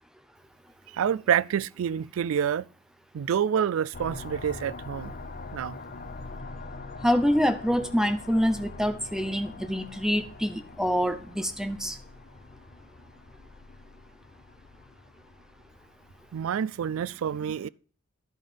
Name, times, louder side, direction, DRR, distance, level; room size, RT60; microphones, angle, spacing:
voice 1, 0.9-2.7 3.1-5.1 5.5-5.8 16.3-17.7, right 8 dB, 70° right, 0.3 m, -27 dB
sound 1, 3.9-16.3, left 3 dB, 40° left, 0.8 m, -44 dB
voice 2, 7.0-12.0, equal, ahead, 0.6 m, -26 dB
11.0 x 5.4 x 5.1 m
head